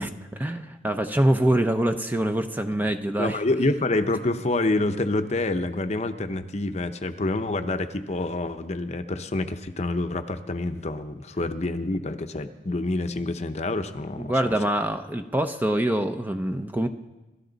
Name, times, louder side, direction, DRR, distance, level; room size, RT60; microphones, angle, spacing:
voice 1, 0.0-3.4 14.2-16.9, right 1 dB, 10° right, 6 dB, 0.6 m, -25 dB
voice 2, 3.2-14.5, left 2 dB, 40° left, 8 dB, 0.8 m, -27 dB
28.0 x 13.0 x 4.0 m, 1.1 s
head